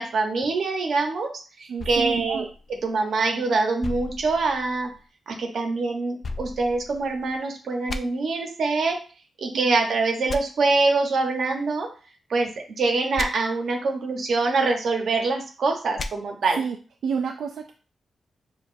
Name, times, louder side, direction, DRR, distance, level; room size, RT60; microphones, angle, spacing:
voice 1, 0.0-2.5 2.8-4.9 5.3-9.0 9.4-11.9 12.3-12.5 12.8-16.6, right 3 dB, 60° right, 3 dB, 0.9 m, -24 dB
voice 2, 1.7-2.5 9.5-9.7 16.6-16.8 17.0-17.7, right 6 dB, 85° right, 3 dB, 0.3 m, -29 dB
sound 1, 1.8-3.2 3.8-5.0 6.2-7.4 7.9-8.0 10.3-10.4 13.2-13.3 16.0-16.1, left 3 dB, 40° left, 0.3 m, -35 dB
6.2 x 2.4 x 2.6 m, 0.36 s
wide cardioid pair, 165°, 0 cm